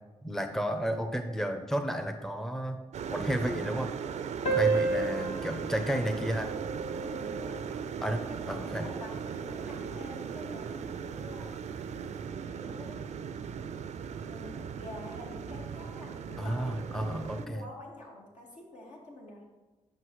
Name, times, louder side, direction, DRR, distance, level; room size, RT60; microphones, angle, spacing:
voice 1, 0.2-2.8 3.1-3.9 4.5-6.5 8.0-8.2 8.5-8.9 16.4-17.6, equal, 5° left, 7 dB, 0.6 m, -32 dB
sound 1, 2.9-17.5, right 7 dB, 65° right, 0.4 m, -38 dB
sound 2, 4.4-9.4, right 4 dB, 55° left, 1.1 m, -33 dB
voice 2, 7.0-7.5 8.0-11.5 12.5-13.1 14.2-19.5, left 1 dB, 70° left, -2 dB, 1.9 m, -47 dB
7.6 x 5.4 x 3.1 m, 1.2 s
supercardioid pair, 60°, 13 cm